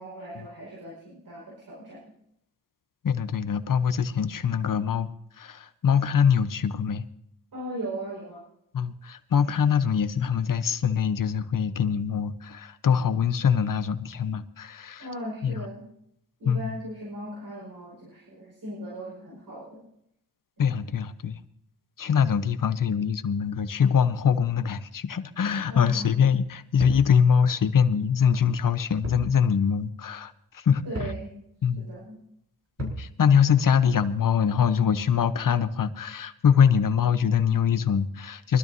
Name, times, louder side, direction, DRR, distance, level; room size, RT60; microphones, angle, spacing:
voice 1, 0.0-2.1 7.5-8.4 15.0-15.8 16.4-19.8 20.6-20.7 25.7-26.1 30.8-31.3 31.8-32.2, right 1 dB, 65° right, -5 dB, 5.3 m, -38 dB
voice 2, 3.0-5.1 5.4-7.0 8.7-15.1 15.4-15.6 16.4-16.7 20.6-21.4 22.0-31.1 31.6-31.9 32.8-38.6, left 7 dB, 55° left, 11 dB, 0.9 m, -23 dB
sound 1, 26.8-27.1 29.0-29.3 29.6-29.7 30.9-31.2 32.8-33.1, right 2 dB, 40° right, 4.7 m, -34 dB
23.5 x 12.5 x 2.7 m, 0.74 s
cardioid pair, 75°, 38 cm